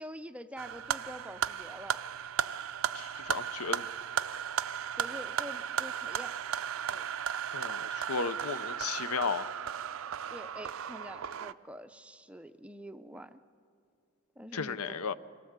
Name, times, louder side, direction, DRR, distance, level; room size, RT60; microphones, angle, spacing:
voice 1, 0.0-2.0 5.0-6.3 6.9-7.1 10.3-13.4 14.4-15.0, equal, 5° right, 9 dB, 0.4 m, -46 dB
sound 1, 0.6-11.5, right 8 dB, 65° right, 0.4 m, -35 dB
voice 2, 2.9-3.9 7.5-9.5 14.5-15.1, left 5 dB, 80° left, 14 dB, 0.7 m, -34 dB
25.5 x 17.0 x 8.1 m, 2.4 s
head